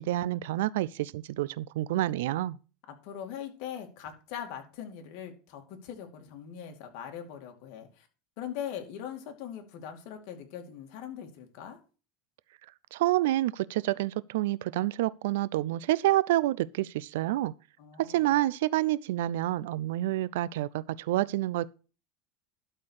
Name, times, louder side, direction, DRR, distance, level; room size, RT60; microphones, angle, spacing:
voice 1, 0.0-2.6 12.9-17.5 18.0-21.7, right 15 dB, 85° right, 0.5 m, -28 dB
voice 2, 2.9-8.1 8.4-11.8 17.8-18.3, left 9 dB, 65° left, 2.5 m, -41 dB
12.0 x 4.4 x 6.5 m
supercardioid pair, 135°, 0 cm